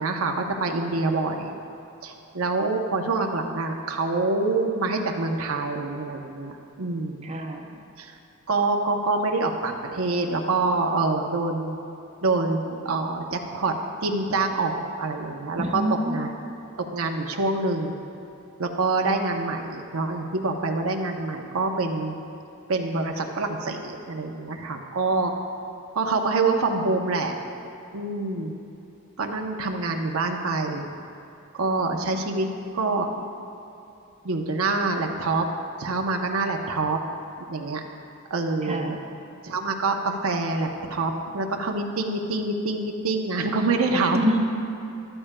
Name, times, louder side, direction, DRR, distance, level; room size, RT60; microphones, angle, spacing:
voice 1, 0.0-1.6 2.0-7.3 8.0-8.1 8.5-11.8 12.2-15.8 16.1-16.3 16.9-18.0 18.6-22.1 22.7-25.3 26.0-27.3 27.9-28.5 29.2-30.9 31.5-32.5 32.7-33.1 34.2-35.4 35.8-37.0 37.5-37.8 38.3-39.0 39.4-44.2, right 3 dB, 80° right, 3 dB, 0.8 m, -26 dB
voice 2, 7.2-7.8 15.6-16.3 38.6-39.0 44.1-44.4, equal, 30° right, 1 dB, 0.8 m, -26 dB
13.5 x 12.5 x 2.2 m, 2.8 s
head